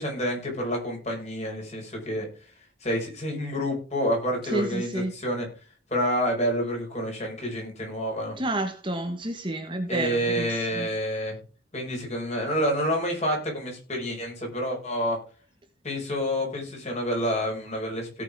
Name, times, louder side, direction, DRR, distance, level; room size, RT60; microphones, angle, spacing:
voice 1, 0.0-2.3 2.8-5.5 5.9-8.4 9.9-11.4 11.7-15.2 15.8-18.2, equal, 30° left, 1 dB, 5.2 m, -28 dB
voice 2, 4.5-5.1 8.4-10.9, right 1 dB, 25° right, 5 dB, 1.3 m, -30 dB
17.5 x 6.5 x 3.6 m, 0.38 s
head